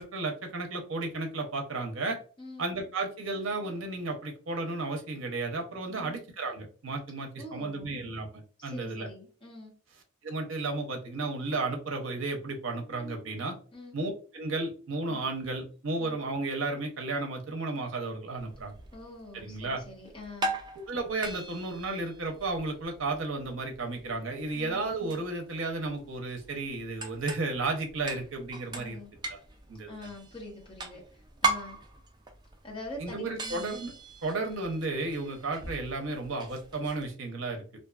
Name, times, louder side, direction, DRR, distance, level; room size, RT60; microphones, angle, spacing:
voice 1, 0.0-2.2 2.6-9.1 10.2-13.6 13.9-18.7 19.3-19.8 20.9-29.0 29.3-29.4 29.7-30.1 33.0-33.9 34.2-37.6, right 3 dB, 65° right, 4 dB, 0.6 m, -33 dB
voice 2, 7.4-7.9 8.6-9.7 13.7-13.9 15.1-15.2 16.0-16.2 18.9-20.5 24.5-24.9 28.8-29.1 29.9-31.8 32.6-33.8, left 1 dB, 25° left, -2 dB, 0.9 m, -44 dB
sound 1, 18.4-37.1, right 3 dB, 20° right, 0.3 m, -40 dB
2.5 x 2.3 x 2.3 m, 0.39 s
head